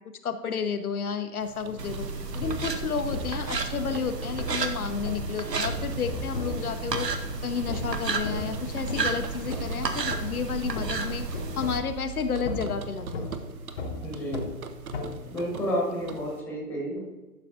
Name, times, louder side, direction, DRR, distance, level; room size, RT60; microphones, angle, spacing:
voice 1, 0.0-2.1 2.3-11.2 11.6-13.3, left 6 dB, 65° left, 8 dB, 0.7 m, -31 dB
sound 1, 1.4-16.4, right 6 dB, 60° right, 0.7 m, -44 dB
sound 2, 1.6-15.5, left 3 dB, 35° left, 0.8 m, -38 dB
sound 3, 1.8-11.8, right 4 dB, 85° right, 1.0 m, -32 dB
voice 2, 14.0-14.5 15.3-17.0, equal, 5° left, -2 dB, 1.1 m, -30 dB
11.5 x 5.6 x 2.6 m, 1.2 s
figure-of-eight pair, 130°, 48 cm